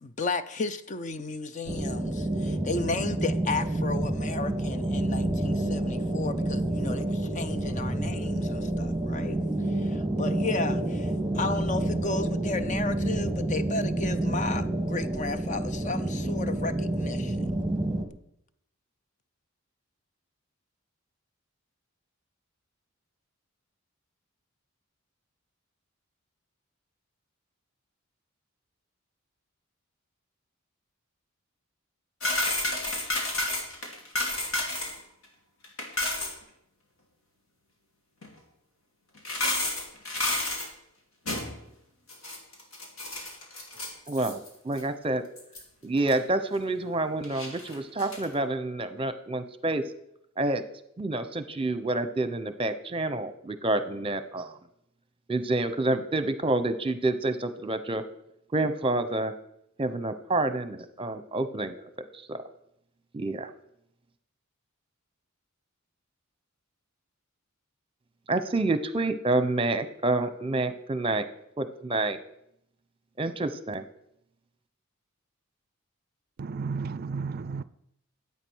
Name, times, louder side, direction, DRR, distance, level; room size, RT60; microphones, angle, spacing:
voice 1, 0.0-9.4 9.7-17.5, left 3 dB, 35° left, 0.6 m, -34 dB
sound 1, 1.7-18.1, right 1 dB, ahead, 1.5 m, -29 dB
sound 2, 32.2-35.0 35.2-35.3 35.6-36.3 38.2-38.3 39.1-40.7 41.2-41.6 42.1-44.5 44.8-44.9 45.4-45.6 46.1-46.2 47.2-48.3, left 2 dB, 75° left, 3.1 m, -30 dB
voice 2, 44.1-45.2 45.8-49.8 50.4-50.6 51.0-54.5 55.3-58.0 58.5-59.3 59.8-62.4 63.1-63.5 68.3-71.3 71.6-72.2 73.2-73.8, right 2 dB, 25° right, 0.8 m, -28 dB
voice 3, 76.4-77.6, right 5 dB, 45° right, 0.4 m, -33 dB
12.5 x 8.4 x 6.4 m
head